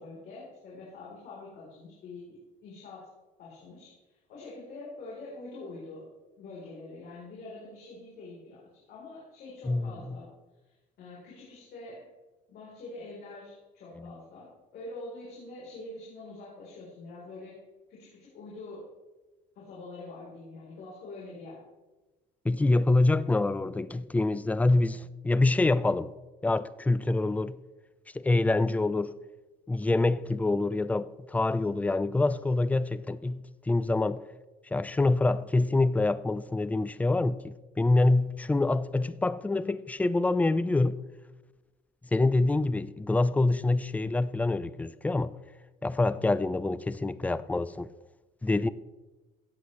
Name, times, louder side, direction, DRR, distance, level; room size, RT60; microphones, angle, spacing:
voice 1, 0.0-3.1 3.4-3.9 4.3-6.1 6.4-10.3 10.7-12.0 12.5-17.5 17.9-18.8 19.6-21.6, left 2 dB, 75° left, 3.7 m, -45 dB
voice 2, 9.7-10.2 14.0-14.1 22.4-26.1 26.4-27.6 28.1-29.1 29.7-33.4 33.7-34.2 34.7-41.1 42.1-45.3 45.8-47.9 48.4-48.7, left 2 dB, 10° left, 0.4 m, -26 dB
16.0 x 8.5 x 3.2 m
cardioid pair, 110°, 17 cm